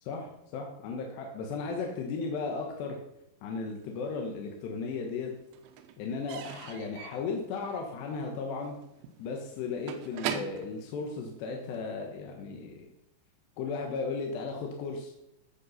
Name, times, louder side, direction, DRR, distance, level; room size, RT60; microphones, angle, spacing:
voice 1, 0.0-3.0 3.4-5.3 6.0-8.8 9.2-12.9 13.6-15.1, left 4 dB, 75° left, 1 dB, 3.3 m, -35 dB
Slam / Squeak / Wood, 4.0-4.9 5.1-11.9, right 9 dB, 85° right, 3.3 m, -41 dB
16.0 x 6.8 x 5.7 m, 0.87 s
omnidirectional pair, 5.1 m